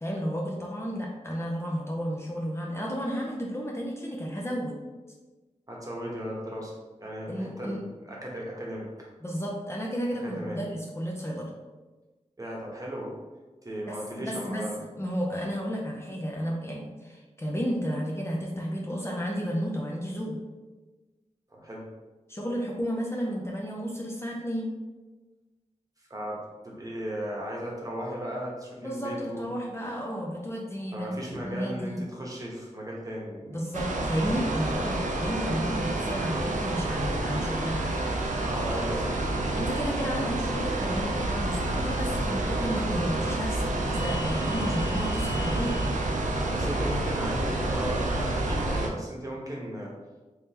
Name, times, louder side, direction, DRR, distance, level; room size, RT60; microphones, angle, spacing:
voice 1, 0.0-4.8 7.3-7.8 9.2-11.5 13.9-14.6 15.0-20.4 22.3-24.7 28.8-31.1 31.4-32.0 33.5-37.9 39.6-45.8, equal, 20° left, -3 dB, 0.5 m, -32 dB
voice 2, 5.7-6.7 7.0-8.9 10.2-10.6 12.4-13.1 13.6-14.8 21.5-21.8 26.1-29.5 30.9-33.7 38.4-39.3 46.5-49.9, equal, 25° right, -3 dB, 1.0 m, -36 dB
sound 1, 33.7-48.9, right 2 dB, 80° right, 0.5 m, -29 dB
3.6 x 3.2 x 2.9 m, 1.2 s
wide cardioid pair, 80°, 13 cm